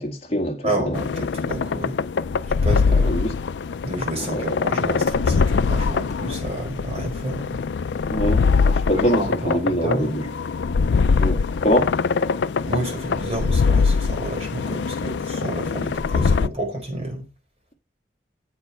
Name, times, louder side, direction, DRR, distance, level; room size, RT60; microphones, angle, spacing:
voice 1, 0.0-1.0 2.9-3.3 4.3-4.6 8.1-10.3 11.2-11.9, equal, 35° left, 1.8 m, -24 dB
voice 2, 0.6-2.0 2.5-3.1 3.8-7.6 8.9-10.2 12.6-17.2, right 1 dB, 35° right, 4.1 m, -30 dB
sound 1, 0.9-16.5, left 5 dB, 90° left, 0.4 m, -22 dB
8.1 x 6.5 x 5.5 m
head